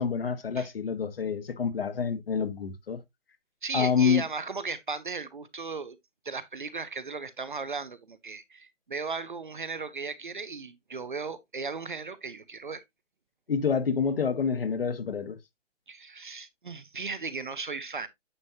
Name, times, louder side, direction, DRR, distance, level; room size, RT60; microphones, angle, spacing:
voice 1, 0.0-3.0 3.7-4.2 13.5-15.4, left 6 dB, 50° left, 1.2 m, -27 dB
voice 2, 3.6-6.0 6.2-12.8 15.9-18.1, right 4 dB, 40° right, 0.6 m, -36 dB
9.8 x 5.7 x 2.7 m
hypercardioid pair, 175°, 37 cm